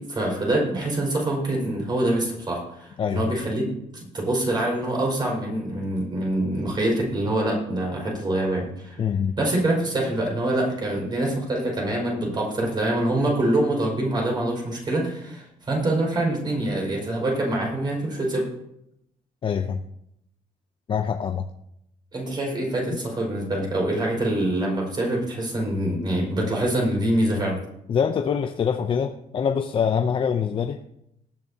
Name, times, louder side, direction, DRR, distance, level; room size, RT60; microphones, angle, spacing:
voice 1, 0.0-3.6 3.9-9.0 9.4-18.5 22.1-27.6, right 1 dB, 30° right, -2 dB, 5.3 m, -25 dB
voice 2, 3.0-3.3 9.0-9.4 19.4-19.8 20.9-21.5 27.9-30.8, left 7 dB, 35° left, 6 dB, 0.6 m, -24 dB
19.0 x 10.5 x 2.8 m, 0.79 s
cardioid pair, 155°, 15 cm